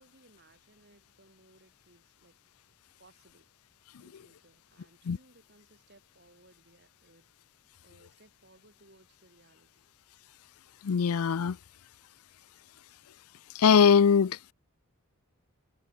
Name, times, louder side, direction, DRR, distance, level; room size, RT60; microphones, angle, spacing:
voice 1, 0.0-2.4 3.0-3.5 4.0-7.3 7.8-9.9, right 2 dB, 50° right, 7.6 m, -62 dB
voice 2, 10.8-11.6 13.5-14.5, left 6 dB, 80° left, 0.5 m, -22 dB
head